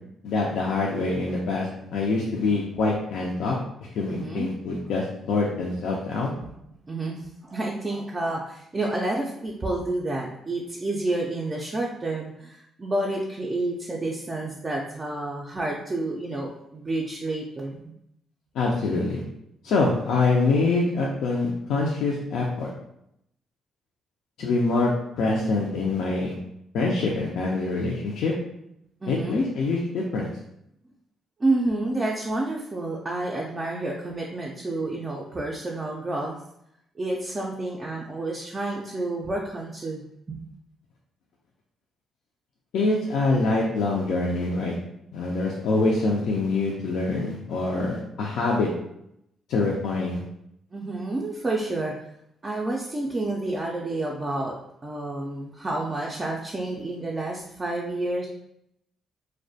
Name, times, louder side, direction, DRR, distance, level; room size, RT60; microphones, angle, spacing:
voice 1, 0.2-3.6 3.9-6.3 18.5-19.2 19.6-22.7 24.4-24.9 25.2-26.3 26.7-28.3 29.1-30.3 42.7-44.7 45.1-48.7 49.5-50.2, left 3 dB, 80° left, -3 dB, 0.3 m, -25 dB
voice 2, 4.1-4.5 6.4-6.5 6.9-17.9 29.0-29.4 31.4-36.4 37.0-40.0 40.3-40.4 50.7-51.9 52.4-54.6 54.8-58.3, right 2 dB, 25° right, -2 dB, 0.3 m, -29 dB
2.3 x 2.1 x 2.6 m, 0.78 s
cardioid pair, 90°, 0 cm